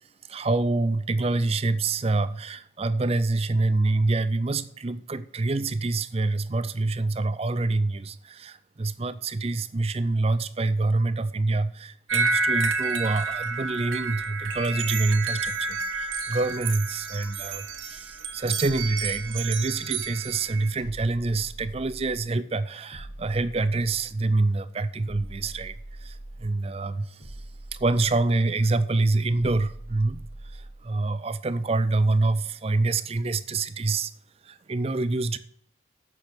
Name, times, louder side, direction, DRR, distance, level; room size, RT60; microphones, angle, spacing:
voice 1, 0.3-25.7 26.0-27.4 27.7-30.2 30.5-34.1 34.4-35.4, right 2 dB, 30° right, 0.5 m, -26 dB
sound 1, 12.1-20.7, right 4 dB, 85° right, 1.1 m, -30 dB
sound 2, 20.8-22.4 22.9-24.3 25.0-26.7 27.2-28.6 29.3-30.9, right 1 dB, 80° left, 4.0 m, -43 dB
8.0 x 6.1 x 6.6 m
head